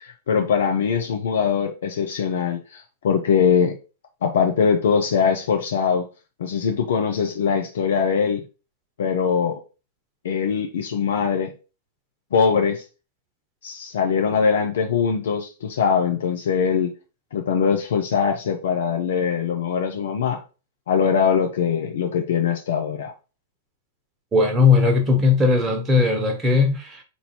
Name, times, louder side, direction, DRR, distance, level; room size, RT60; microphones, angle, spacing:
voice 1, 0.0-3.8 4.2-6.0 6.4-8.4 9.0-9.6 10.2-11.5 12.3-12.8 13.6-16.9 17.3-20.4 20.9-23.1, left 6 dB, 60° left, 0.6 m, -22 dB
voice 2, 24.3-27.0, left 4 dB, 20° right, 1.0 m, -18 dB
4.5 x 2.6 x 4.3 m
figure-of-eight pair, 100°, 0 cm